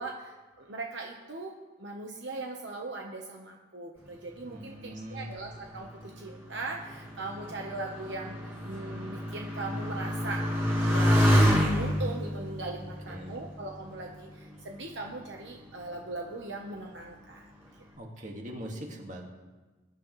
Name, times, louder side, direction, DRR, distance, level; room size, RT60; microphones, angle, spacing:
voice 1, 0.0-10.5 10.9-17.5, right 2 dB, 70° right, 1 dB, 1.1 m, -39 dB
voice 2, 4.5-5.4 13.1-13.3 18.0-19.3, equal, 40° right, 0 dB, 2.0 m, -41 dB
Motorcycle, 5.4-14.4 15.1-15.7, equal, 15° right, 3.3 m, -28 dB
21.5 x 10.0 x 3.2 m, 1.2 s
head